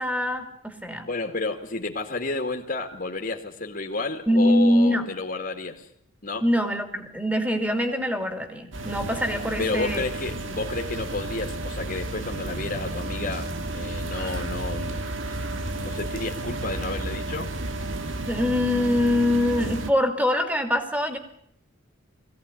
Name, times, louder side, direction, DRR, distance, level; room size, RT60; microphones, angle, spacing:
voice 1, 0.0-1.0 4.3-5.1 6.4-10.1 18.3-21.2, left 1 dB, 10° right, 6 dB, 2.8 m, -23 dB
voice 2, 1.0-5.9 6.2-6.4 9.6-13.5 13.7-15.4 15.7-17.5, left 3 dB, 45° left, 2 dB, 2.3 m, -31 dB
sound 1, 8.7-19.9, right 2 dB, 75° right, 1.6 m, -32 dB
22.5 x 17.0 x 10.0 m, 0.68 s
head